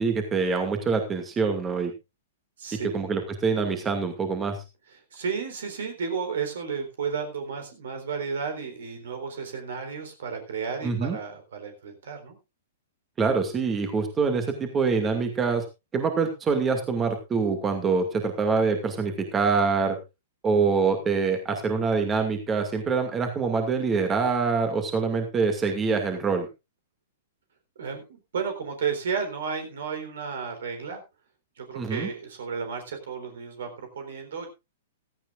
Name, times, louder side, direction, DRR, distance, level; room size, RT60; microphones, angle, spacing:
voice 1, 0.0-1.9 2.9-4.6 10.8-11.2 13.2-15.6 15.9-20.0 20.4-26.5 31.7-32.1, right 5 dB, 20° right, 5 dB, 2.2 m, -25 dB
voice 2, 2.6-3.1 5.1-12.4 27.8-31.0 31.6-34.5, right 6 dB, 60° right, 6 dB, 3.8 m, -33 dB
16.0 x 14.0 x 2.5 m, 0.26 s
figure-of-eight pair, 110°, 0 cm